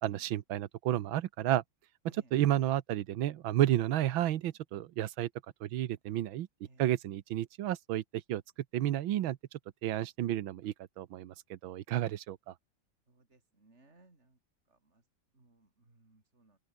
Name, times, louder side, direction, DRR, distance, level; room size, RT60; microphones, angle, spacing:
voice 1, 0.0-1.6 2.0-5.3 5.6-6.5 6.8-8.0 8.3-8.4 8.7-9.4 9.8-12.5, right 13 dB, 85° right, 1.7 m, -31 dB
voice 2, 13.2-14.3 15.4-16.6, right 2 dB, 35° right, 4.8 m, -63 dB
open air
omnidirectional pair, 2.1 m